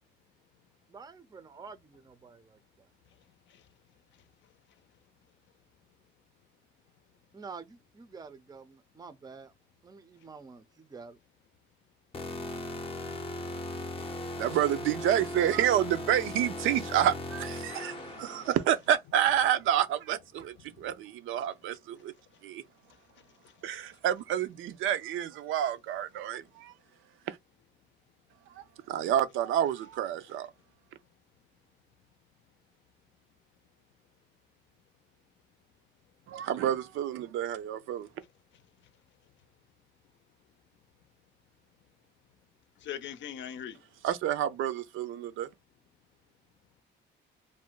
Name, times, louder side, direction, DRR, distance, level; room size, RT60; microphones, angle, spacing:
voice 1, 0.9-2.9 7.3-9.5 9.8-11.2, right 5 dB, 20° right, 0.5 m, -48 dB
sound 1, 12.1-18.6, left 1 dB, 30° left, 0.6 m, -38 dB
voice 2, 14.4-22.1 22.4-22.6 23.6-26.7 27.3-27.4 28.5-30.5 36.3-38.1 44.0-45.5, right 10 dB, 85° right, 0.5 m, -29 dB
voice 3, 18.0-18.5 20.7-20.9 23.4-23.5 42.8-43.8, left 9 dB, 70° left, 0.5 m, -42 dB
2.5 x 2.1 x 3.7 m
cardioid pair, 90°, 20 cm